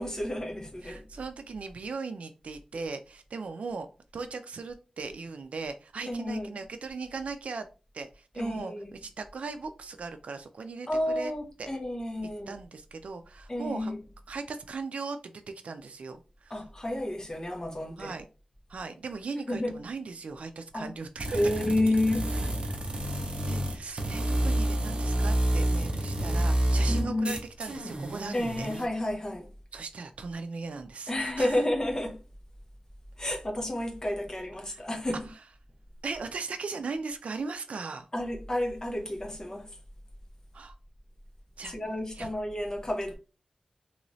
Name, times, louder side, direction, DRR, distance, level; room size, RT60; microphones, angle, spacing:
voice 1, 0.0-1.0 6.1-6.5 8.4-9.0 10.9-12.6 13.5-14.0 16.5-18.2 19.5-19.8 20.7-20.9 21.3-22.3 26.9-27.4 28.3-29.5 31.1-32.2 33.2-35.3 38.1-39.8 41.7-43.2, left 1 dB, 30° left, 0.9 m, -30 dB
voice 2, 0.8-3.9 4.1-7.7 7.9-11.3 11.6-11.7 12.5-13.9 14.3-16.5 18.0-18.3 18.7-21.4 21.8-21.9 22.9-28.7 29.7-31.6 34.7-34.8 36.0-38.1 40.5-40.7 41.6-41.7 42.2-42.3, right 4 dB, 85° right, 0.3 m, -38 dB
sound 1, 21.2-28.9, right 1 dB, 55° right, 0.7 m, -29 dB
3.1 x 3.0 x 2.6 m
wide cardioid pair, 65°, 2 cm